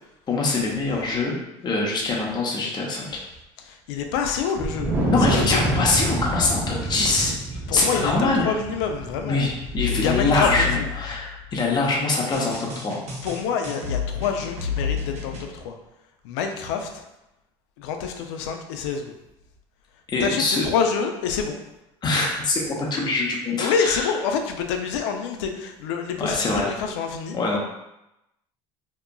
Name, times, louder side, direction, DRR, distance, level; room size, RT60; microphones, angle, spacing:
voice 1, 0.3-1.4 1.6-3.2 5.1-8.5 9.2-13.0 20.1-20.6 22.0-24.1 26.2-26.7 27.3-27.6, left 3 dB, 30° left, -2 dB, 0.7 m, -24 dB
voice 2, 3.6-5.6 6.8-6.9 7.7-9.5 10.0-10.9 13.2-15.8 16.2-17.0 17.8-19.1 20.2-21.6 23.6-27.4, left 6 dB, 80° left, 5 dB, 0.4 m, -27 dB
Wind, 4.6-11.1, right 1 dB, 15° right, 0.8 m, -28 dB
sound 1, 9.7-11.6 12.3-15.5, left 6 dB, 55° right, 0.8 m, -30 dB
2.8 x 2.4 x 2.2 m, 0.90 s
supercardioid pair, 85°, 14 cm